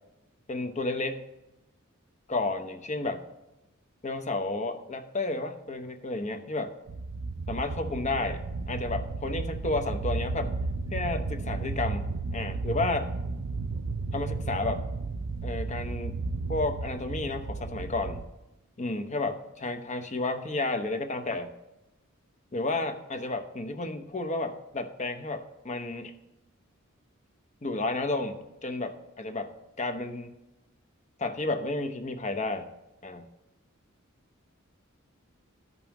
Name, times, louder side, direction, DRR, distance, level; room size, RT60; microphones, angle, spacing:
voice 1, 0.5-1.2 2.3-3.2 4.0-6.7 7.5-10.5 10.9-13.1 14.1-14.8 15.4-18.3 18.8-21.5 22.5-26.1 27.6-29.5 29.8-30.3 31.2-32.7 33.0-33.2, left 2 dB, 35° left, 7 dB, 0.8 m, -32 dB
sound 1, 6.9-18.3, right 3 dB, 70° right, 0.5 m, -33 dB
14.0 x 5.5 x 3.0 m, 0.96 s
head